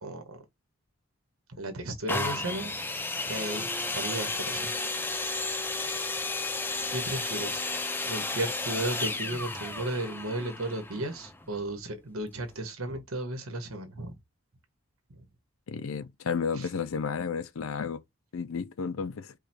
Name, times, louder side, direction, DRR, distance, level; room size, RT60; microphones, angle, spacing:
voice 1, 0.0-0.4 1.5-2.7 3.2-4.7 5.1-5.7 6.9-7.7 8.0-14.2 15.1-15.2 16.5-16.7, right 1 dB, 85° right, 1.4 m, -35 dB
sound 1, 2.1-11.8 12.5-12.6, left 3 dB, 10° left, 0.4 m, -33 dB
voice 2, 15.7-18.0 18.3-19.3, left 5 dB, 75° left, 0.5 m, -32 dB
4.9 x 2.4 x 4.5 m
head